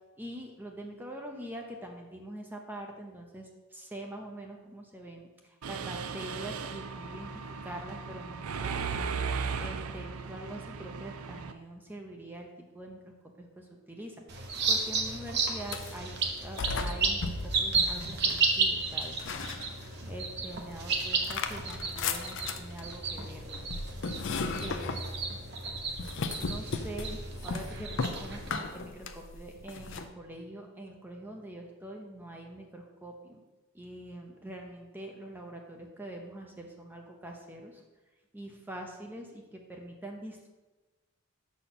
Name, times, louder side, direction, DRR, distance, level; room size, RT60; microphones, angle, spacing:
voice 1, 0.2-8.8 9.6-12.5 12.7-19.2 20.1-23.5 24.4-25.0 26.4-33.4 33.7-37.8 38.3-40.5, right 1 dB, 10° right, 1 dB, 0.6 m, -44 dB
Mechanisms, 5.6-11.5, right 5 dB, 85° right, 0.5 m, -36 dB
sound 1, 14.3-28.6, right 4 dB, 50° right, 1.0 m, -33 dB
sound 2, 15.6-16.1 16.6-18.5 19.0-20.1 20.5-30.1, left 4 dB, 60° left, 0.5 m, -37 dB
6.7 x 4.2 x 5.9 m, 1.2 s
head